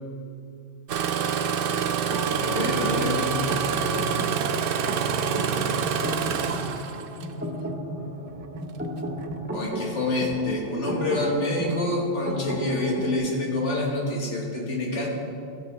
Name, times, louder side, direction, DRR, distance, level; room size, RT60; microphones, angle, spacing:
Engine starting, 0.9-7.3 8.3-8.6 9.2-9.6 10.2-10.4, right 7 dB, 60° right, 0.7 m, -27 dB
sound 1, 2.1-13.2, right 1 dB, 10° right, 1.7 m, -34 dB
voice 1, 2.4-3.4 9.5-15.1, left 2 dB, 85° left, -2 dB, 2.1 m, -27 dB
14.5 x 7.5 x 3.5 m, 2.5 s
omnidirectional pair, 1.2 m